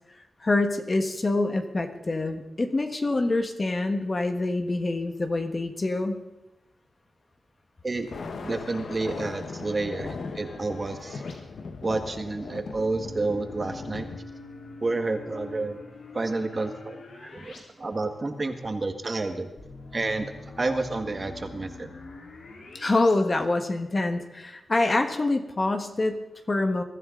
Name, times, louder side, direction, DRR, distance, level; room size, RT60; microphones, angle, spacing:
voice 1, 0.4-6.2 22.7-26.8, left 2 dB, 30° left, 6 dB, 1.6 m, -26 dB
Thunder, 8.0-14.2, left 4 dB, 70° left, 1.3 m, -39 dB
sound 1, 8.2-11.3 12.7-17.6 17.9-18.0 19.6-23.1, left 3 dB, 90° left, 3.9 m, -45 dB
voice 2, 8.4-11.2 11.8-14.2 14.8-15.8 16.1-19.5 19.9-20.3 20.6-21.9, right 3 dB, 35° right, 6 dB, 1.8 m, -30 dB
22.5 x 14.0 x 3.9 m, 0.99 s
wide cardioid pair, 125°, 0 cm